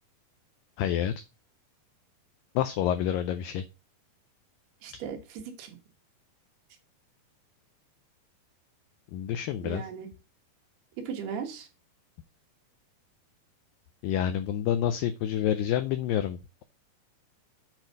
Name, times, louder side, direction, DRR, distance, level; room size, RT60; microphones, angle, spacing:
voice 1, 0.8-1.1 2.6-3.6 9.1-9.8 14.0-16.6, left 10 dB, 90° left, 11 dB, 2.0 m, -28 dB
voice 2, 4.8-5.8 9.6-10.1 11.0-11.7, right 7 dB, 80° right, 2 dB, 3.3 m, -37 dB
7.9 x 4.5 x 5.3 m, 0.30 s
omnidirectional pair, 4.6 m